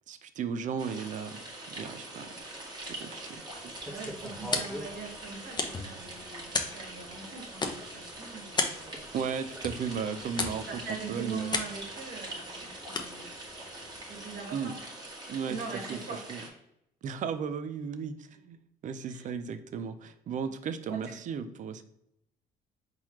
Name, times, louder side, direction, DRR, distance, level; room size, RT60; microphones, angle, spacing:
voice 1, 0.1-2.5 2.8-3.4 9.1-10.8 11.1-11.5 14.5-14.7 15.3-15.6 15.9-16.4 17.0-18.6 18.8-21.8, right 6 dB, 50° right, 11 dB, 0.5 m, -35 dB
sound 1, 0.8-16.5, right 1 dB, 25° right, 1.4 m, -44 dB
sound 2, 2.4-2.6 3.1-3.4 3.8-4.9 5.6-5.7 6.7-6.8 8.9-9.1 9.5-9.6 10.2-10.3, equal, ahead, 0.9 m, -41 dB
sound 3, 3.4-14.7, left 3 dB, 25° left, 0.7 m, -38 dB
voice 2, 3.6-9.0 10.7-13.3 14.1-14.7 15.5-16.5 19.0-19.2 20.9-21.1, right 5 dB, 70° right, -1 dB, 1.8 m, -42 dB
4.6 x 3.9 x 2.9 m, 0.79 s
cardioid pair, 110°, 17 cm